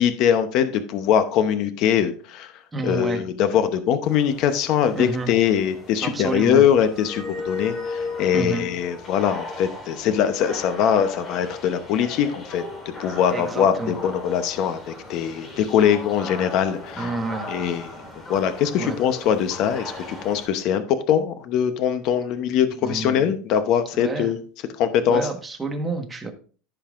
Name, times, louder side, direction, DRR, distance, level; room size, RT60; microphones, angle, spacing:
voice 1, 0.0-2.5 2.8-12.6 13.0-17.1 17.5-18.0 18.3-24.4 24.8-25.2, left 9 dB, 45° left, 10 dB, 0.8 m, -22 dB
voice 2, 2.7-3.2 4.9-5.3 6.0-6.7 8.3-8.7 13.3-13.9 17.0-17.6 18.8-19.0 22.7-23.3 23.9-24.3 25.1-26.3, right 3 dB, 10° right, 3 dB, 1.3 m, -29 dB
sound 1, 4.0-20.5, left 3 dB, 20° left, 2.3 m, -36 dB
14.5 x 5.5 x 2.5 m, 0.39 s
cardioid pair, 160°, 0 cm